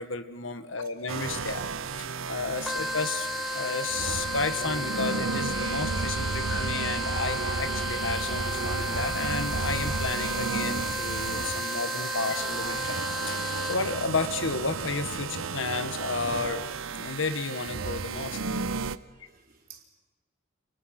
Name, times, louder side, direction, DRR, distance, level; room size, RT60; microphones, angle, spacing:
voice 1, 0.0-1.7 2.0-3.3 3.5-13.0 13.2-16.6 16.9-18.4, left 4 dB, 65° left, 9 dB, 1.7 m, -32 dB
sound 1, 1.1-19.0, right 5 dB, 75° right, 0.9 m, -33 dB
sound 2, 2.7-14.1, left 2 dB, ahead, 1.4 m, -34 dB
voice 2, 19.1-19.8, right 8 dB, 45° right, 1 dB, 4.2 m, -54 dB
29.5 x 28.0 x 6.0 m, 1.2 s
head